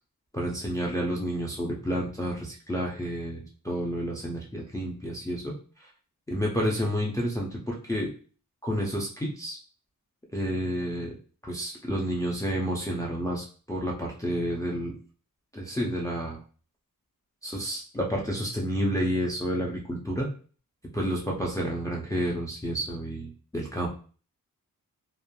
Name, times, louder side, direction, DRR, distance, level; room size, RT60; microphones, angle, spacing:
voice 1, 0.3-5.9 6.3-8.1 8.6-9.6 10.3-11.1 11.4-14.9 15.5-16.4 17.4-20.3 20.9-23.9, equal, 10° left, -2 dB, 0.5 m, -30 dB
3.0 x 2.4 x 2.2 m, 0.40 s
wide cardioid pair, 125°, 35 cm